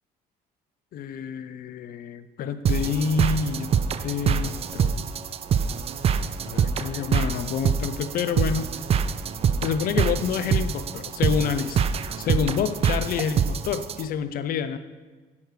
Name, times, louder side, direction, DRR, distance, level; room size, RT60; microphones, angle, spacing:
voice 1, 0.9-3.7 4.0-5.1 6.4-8.7 9.6-11.8 12.2-14.8, left 7 dB, 60° left, 11 dB, 0.5 m, -28 dB
sound 1, 2.6-14.0, right 7 dB, 35° right, 0.3 m, -25 dB
8.5 x 6.4 x 3.2 m, 1.3 s
cardioid pair, 110°, 17 cm